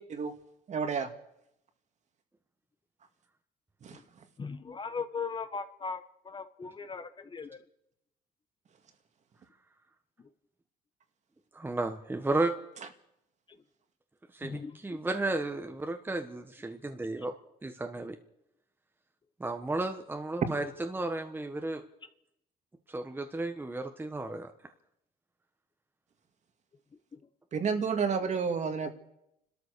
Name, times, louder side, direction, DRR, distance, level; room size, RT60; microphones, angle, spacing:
voice 1, 0.7-1.1 3.8-4.0 27.5-28.9, right 5 dB, 45° right, 7 dB, 2.3 m, -30 dB
voice 2, 4.4-7.6 14.4-15.0 17.2-17.3 27.1-27.2, left 5 dB, 30° left, 10 dB, 1.2 m, -39 dB
voice 3, 11.5-12.5 14.3-17.3 17.6-18.2 19.4-21.8 22.9-24.5, right 2 dB, 10° right, 6 dB, 1.3 m, -33 dB
30.0 x 13.0 x 6.8 m, 0.81 s
cardioid pair, 110°, 17 cm